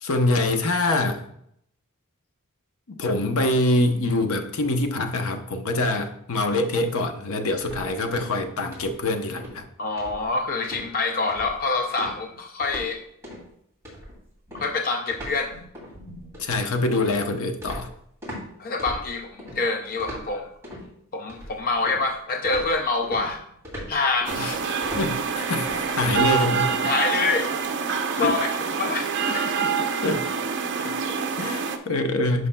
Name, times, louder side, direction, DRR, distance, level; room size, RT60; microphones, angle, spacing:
voice 1, 0.0-1.2 2.9-9.7 16.4-17.9 24.4-24.5 25.0-26.7 28.2-28.4 30.0-30.3 30.8-32.5, left 2 dB, 65° left, 7 dB, 0.8 m, -25 dB
sound 1, 7.6-8.4 8.7-9.0 9.4-9.6 10.0-10.4 10.6-10.9 11.3-11.6 12.0-12.9 13.2-13.5 13.8-18.4 18.8-19.6 20.0-20.8 21.3-22.1 22.4-26.8, equal, 10° right, 2.5 m, -39 dB
voice 2, 9.8-13.0 14.6-15.5 18.6-20.5 21.1-23.4 23.9-24.6 24.9-25.0 26.8-27.5 28.1-28.5 28.8-29.7, left 3 dB, 40° left, 4 dB, 0.5 m, -26 dB
sound 2, 24.3-31.8, right 6 dB, 55° right, 0.7 m, -26 dB
11.0 x 5.5 x 2.2 m, 0.72 s
head